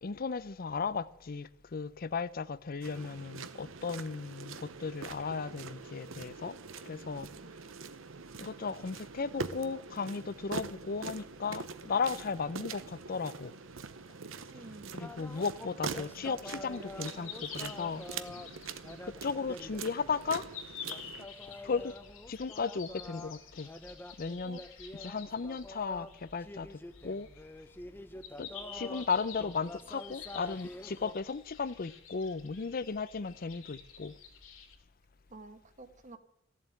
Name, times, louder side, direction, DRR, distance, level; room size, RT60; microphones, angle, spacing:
voice 1, 0.0-6.6 6.9-7.3 8.4-13.6 14.9-18.0 19.0-20.5 21.6-22.0 22.3-23.7 24.2-24.6 24.9-27.3 28.4-34.1, left 5 dB, 50° left, 17 dB, 0.6 m, -35 dB
sound 1, 2.8-21.3, right 5 dB, 80° right, 0.8 m, -44 dB
voice 2, 14.5-15.2 24.4-24.6 35.3-36.2, right 2 dB, 40° right, 9 dB, 1.3 m, -50 dB
sound 2, 15.0-31.1, left 1 dB, 10° left, 0.8 m, -47 dB
sound 3, 16.6-34.8, left 7 dB, 85° left, 2.6 m, -50 dB
14.5 x 7.5 x 9.1 m, 0.75 s
head